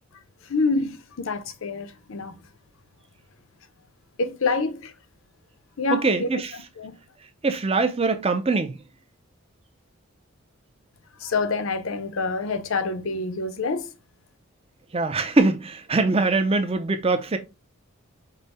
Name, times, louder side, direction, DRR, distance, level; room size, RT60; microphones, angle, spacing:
voice 1, 0.5-2.4 4.2-4.9 5.8-6.4 6.8-7.0 11.2-13.9, left 3 dB, 65° left, 0.6 m, -27 dB
voice 2, 5.9-6.5 7.4-8.8 14.9-17.4, right 3 dB, 25° right, 0.5 m, -22 dB
5.5 x 2.1 x 4.1 m
head